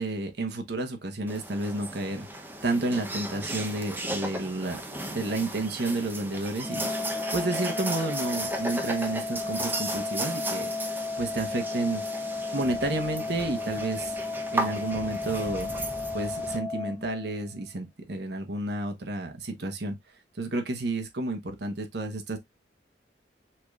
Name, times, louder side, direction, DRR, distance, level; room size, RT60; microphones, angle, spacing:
voice 1, 0.0-4.8 5.1-10.7 11.2-12.2 12.5-14.1 14.5-15.7 16.1-20.0 20.4-22.4, right 2 dB, 65° right, 1.0 m, -31 dB
sound 1, 1.3-16.6, right 1 dB, 10° right, 0.7 m, -36 dB
Organ, 6.6-17.6, left 3 dB, 15° left, 1.6 m, -34 dB
5.9 x 3.2 x 2.4 m
head